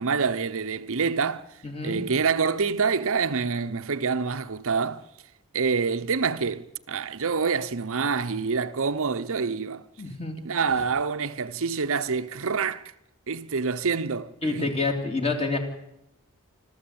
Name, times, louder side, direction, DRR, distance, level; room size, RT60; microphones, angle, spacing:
voice 1, 0.0-1.5 1.8-5.0 5.5-9.8 10.4-12.8 13.3-14.7, right 5 dB, 65° right, 0.8 m, -26 dB
voice 2, 1.6-2.0 10.0-10.4 14.4-15.6, left 3 dB, 30° left, 3.3 m, -27 dB
26.0 x 14.0 x 8.6 m
head